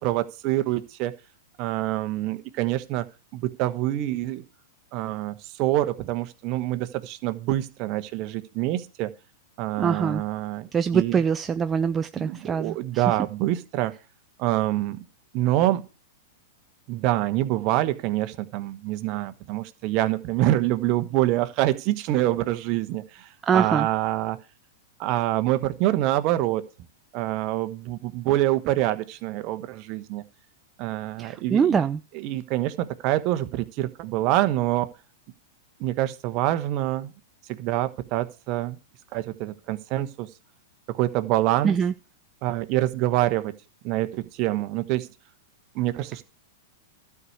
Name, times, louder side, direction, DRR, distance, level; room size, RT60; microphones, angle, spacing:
voice 1, 0.0-1.1 1.6-3.0 3.3-4.4 4.9-9.1 9.6-11.2 12.2-13.9 14.4-15.0 15.3-15.9 16.9-24.4 25.0-26.7 27.1-30.2 30.8-31.8 32.1-34.9 35.8-37.1 37.5-38.8 39.1-40.3 40.9-41.8 42.4-43.5 43.8-45.1 45.7-46.2, right 15 dB, 45° right, 1.2 m, -26 dB
voice 2, 9.8-10.2 10.7-13.0 23.4-23.9 31.2-32.0 41.6-41.9, right 7 dB, 20° right, 0.4 m, -23 dB
12.5 x 4.8 x 8.0 m
hypercardioid pair, 120°, 0 cm